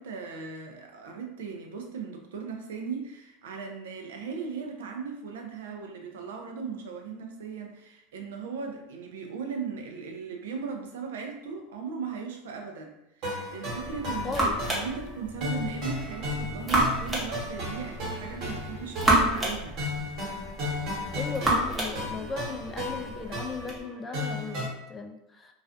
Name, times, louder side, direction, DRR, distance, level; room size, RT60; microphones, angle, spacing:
voice 1, 0.0-19.8, right 6 dB, 85° right, 3 dB, 0.4 m, -37 dB
sound 1, 13.2-24.7, left 1 dB, 55° right, 1.2 m, -35 dB
sound 2, 13.7-23.8, right 1 dB, 15° right, 0.8 m, -31 dB
voice 2, 14.2-14.6 21.1-25.5, left 4 dB, 20° left, 3 dB, 0.3 m, -37 dB
2.4 x 2.2 x 2.5 m, 0.86 s
supercardioid pair, 115°, 0 cm